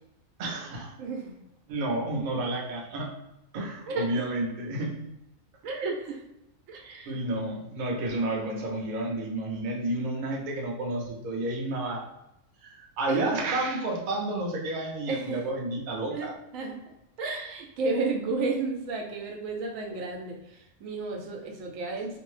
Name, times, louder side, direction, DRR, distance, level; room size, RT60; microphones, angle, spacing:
voice 1, 0.4-0.9 1.7-3.1 3.5-5.1 7.1-12.0 12.6-16.3, right 2 dB, 55° right, -1 dB, 0.6 m, -31 dB
voice 2, 1.0-1.3 3.9-4.1 5.6-6.2 6.7-7.2 13.1-13.3 15.0-15.4 16.1-16.8 17.2-22.2, right 3 dB, 85° right, 1 dB, 1.0 m, -32 dB
2.6 x 2.0 x 3.1 m, 0.87 s
omnidirectional pair, 1.4 m